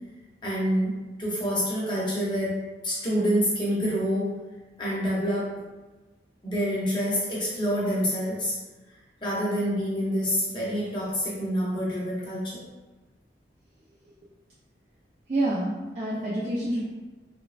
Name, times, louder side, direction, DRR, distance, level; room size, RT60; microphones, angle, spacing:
voice 1, 0.4-2.6 2.8-4.3 4.8-5.5 6.4-8.5 9.2-12.6, equal, 25° left, -7 dB, 0.7 m, -27 dB
voice 2, 15.3-16.9, right 1 dB, 40° right, -6 dB, 0.4 m, -27 dB
3.1 x 2.0 x 2.4 m, 1.2 s
head